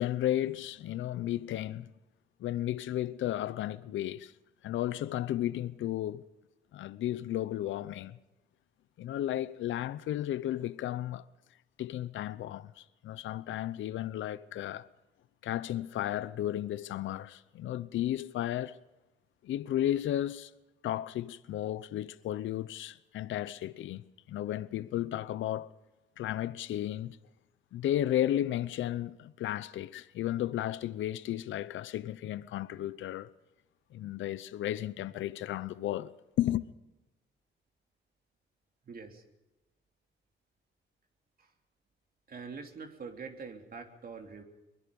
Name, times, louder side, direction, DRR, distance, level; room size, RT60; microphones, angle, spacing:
voice 1, 0.0-1.9 2.4-4.3 4.6-6.2 6.7-8.2 9.0-11.2 11.8-14.9 15.4-18.8 19.4-20.5 20.8-24.0 24.3-25.7 26.2-27.2 27.7-33.3 33.9-36.1 36.4-36.6, left 12 dB, 75° left, 0.8 m, -33 dB
voice 2, 38.8-39.2 41.4-41.5 42.3-44.4, right 5 dB, 50° right, 3.1 m, -44 dB
23.0 x 21.0 x 5.4 m
cardioid pair, 90°, 20 cm